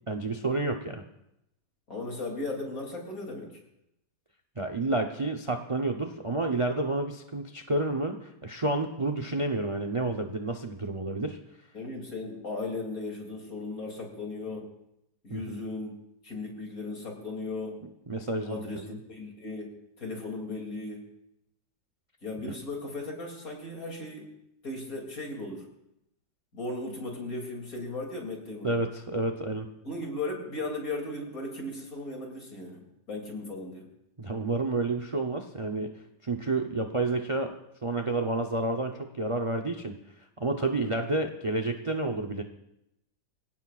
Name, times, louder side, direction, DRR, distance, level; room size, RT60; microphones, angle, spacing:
voice 1, 0.1-1.0 4.6-11.4 15.3-15.6 18.1-19.0 28.6-29.7 34.2-35.9 36.2-37.5 37.8-40.0 40.4-42.4, right 2 dB, 30° right, 5 dB, 0.6 m, -30 dB
voice 2, 1.9-3.6 11.7-14.7 15.2-16.0 16.2-17.8 18.4-21.0 22.2-24.3 24.6-25.7 26.5-28.8 29.8-33.9, left 2 dB, 55° left, 0 dB, 3.4 m, -37 dB
25.5 x 17.0 x 2.5 m, 0.83 s
omnidirectional pair, 1.9 m